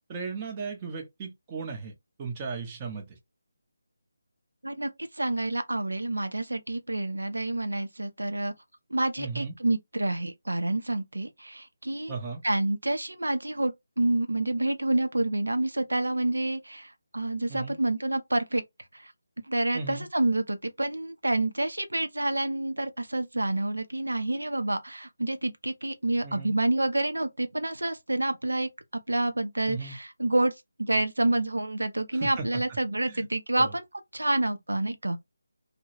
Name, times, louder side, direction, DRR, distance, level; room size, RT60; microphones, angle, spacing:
voice 1, 0.1-1.9 2.2-3.2 9.2-9.5 12.1-12.4 17.5-17.8 19.7-20.1 26.2-26.6 29.6-29.9 32.1-32.4 33.1-33.2 33.5-33.7, right 4 dB, 20° right, 0.7 m, -36 dB
voice 2, 4.6-8.5 8.9-12.1 12.4-18.6 18.9-19.1 19.5-28.7 29.1-30.5 30.8-33.8 34.1-35.2, right 2 dB, 75° right, 0.5 m, -28 dB
2.2 x 2.0 x 3.1 m
figure-of-eight pair, 155°, 0 cm